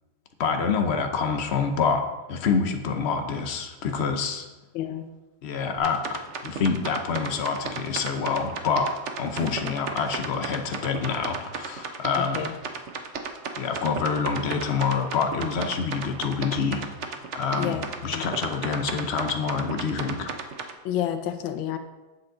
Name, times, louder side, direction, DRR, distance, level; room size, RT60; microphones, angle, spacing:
voice 1, 0.4-2.0 2.3-4.5 5.4-8.9 9.2-12.5 13.6-20.3, left 5 dB, 70° left, 5 dB, 0.6 m, -27 dB
voice 2, 4.7-5.1 9.4-9.7 12.3-12.5 17.6-18.2 20.8-21.8, left 10 dB, 90° left, 7 dB, 1.4 m, -30 dB
sound 1, 5.8-20.7, right 5 dB, 60° right, 0.7 m, -34 dB
8.9 x 7.8 x 3.8 m, 1.1 s
omnidirectional pair, 2.1 m